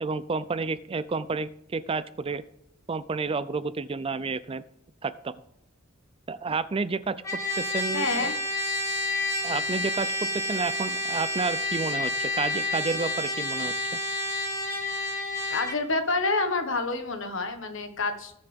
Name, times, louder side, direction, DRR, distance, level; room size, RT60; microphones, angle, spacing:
voice 1, 0.0-2.4 2.9-4.6 5.0-5.3 6.3-7.1 7.6-8.3 9.4-10.1 10.5-13.7, right 4 dB, 25° right, 15 dB, 0.4 m, -30 dB
Trumpet, 7.2-15.8, left 1 dB, 15° left, 3.3 m, -29 dB
voice 2, 7.9-8.3 15.5-18.3, left 3 dB, 65° left, 7 dB, 1.6 m, -28 dB
19.5 x 6.6 x 3.6 m, 0.79 s
head